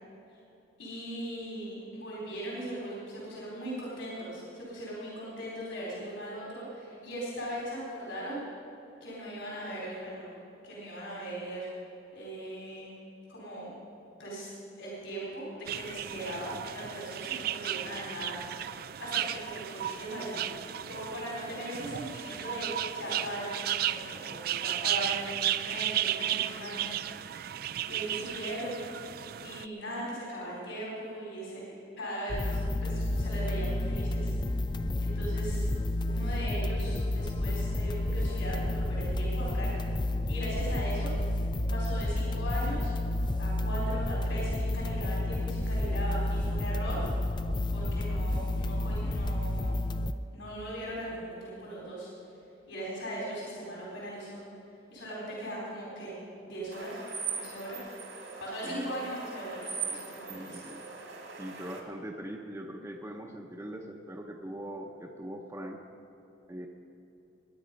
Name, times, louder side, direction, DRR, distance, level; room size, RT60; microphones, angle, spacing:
voice 1, 0.8-8.4 9.0-10.3 10.6-11.7 12.1-12.9 13.3-13.8 14.2-14.5 14.8-18.7 19.0-20.5 20.9-26.9 27.9-28.9 29.4-31.6 32.0-34.3 35.0-35.7 36.0-39.7 40.3-41.1 41.7-42.9 43.4-47.0 47.7-49.7 50.3-52.1 52.7-54.4 54.9-56.1 56.4-57.0 57.3-57.9 58.4-60.6, right 1 dB, 75° left, -5 dB, 4.2 m, -39 dB
sound 1, 15.7-29.7, right 11 dB, 50° right, 0.3 m, -34 dB
sound 2, 32.3-50.1, left 1 dB, 25° left, 0.4 m, -30 dB
sound 3, 56.7-61.8, right 6 dB, 70° right, 2.1 m, -40 dB
voice 2, 58.6-59.1 60.2-60.8 61.4-65.8 66.5-66.7, right 1 dB, 15° right, 1 dB, 0.7 m, -41 dB
21.0 x 9.8 x 5.3 m, 3.0 s
head